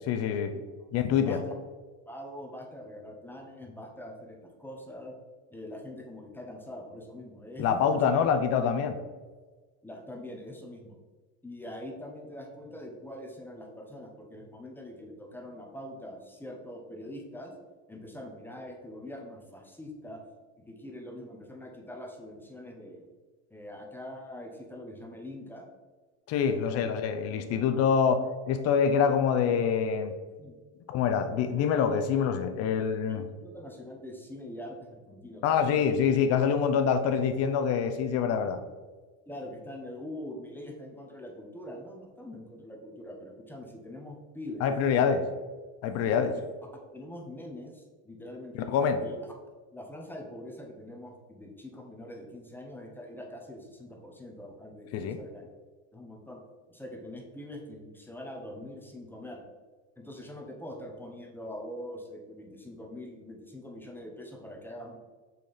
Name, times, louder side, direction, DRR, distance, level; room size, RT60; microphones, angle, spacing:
voice 1, 0.1-0.5 0.9-1.4 7.6-9.0 26.3-30.1 30.9-33.3 35.4-38.6 44.6-45.2 45.8-46.3 48.7-49.0 54.9-55.2, left 7 dB, 45° left, 8 dB, 0.6 m, -25 dB
voice 2, 2.1-5.1 5.5-8.0 9.8-11.0 11.4-17.5 17.9-20.2 20.6-23.1 23.5-25.7 26.5-26.9 30.4-30.6 33.1-35.9 39.3-45.2 46.1-46.3 46.9-48.7 49.0-49.2 49.7-55.5 55.9-56.4 56.7-59.4 60.0-65.0, left 1 dB, 5° left, 0 dB, 0.8 m, -43 dB
5.9 x 4.4 x 4.0 m, 1.4 s
supercardioid pair, 140°, 36 cm